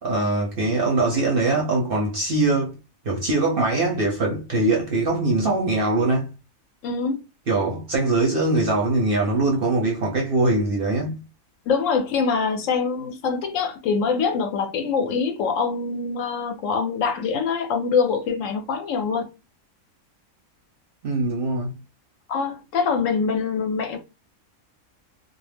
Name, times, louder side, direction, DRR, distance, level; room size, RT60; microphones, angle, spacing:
voice 1, 0.0-2.7 3.0-6.3 7.5-11.2 21.0-21.7, right 2 dB, 55° right, 0.7 m, -22 dB
voice 2, 6.8-7.2 11.7-19.3 22.3-24.0, left 5 dB, 70° left, 0.9 m, -24 dB
2.3 x 2.1 x 3.3 m
omnidirectional pair, 1.5 m